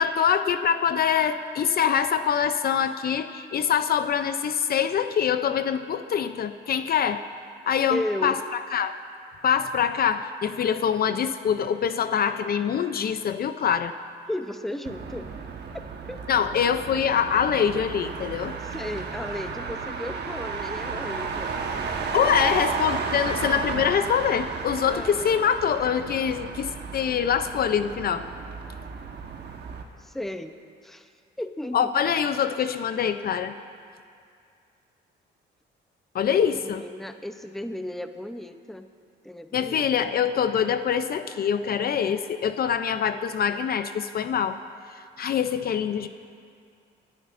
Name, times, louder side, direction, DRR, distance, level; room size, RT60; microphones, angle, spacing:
voice 1, 0.0-7.2 7.7-9.0 9.4-13.9 16.3-18.6 22.1-28.3 31.7-33.5 36.1-36.8 39.5-44.6 45.2-46.1, left 8 dB, 50° left, 10 dB, 0.5 m, -24 dB
voice 2, 7.9-8.4 14.3-15.3 16.1-16.2 18.6-21.5 24.8-25.3 30.0-30.5 30.8-31.1 31.4-31.9 36.4-38.9 39.2-40.1, left 1 dB, ahead, 8 dB, 0.6 m, -34 dB
Motor vehicle (road), 14.8-29.8, right 5 dB, 60° right, 1.2 m, -33 dB
29.0 x 10.5 x 2.5 m, 2.3 s
cardioid pair, 90°, 20 cm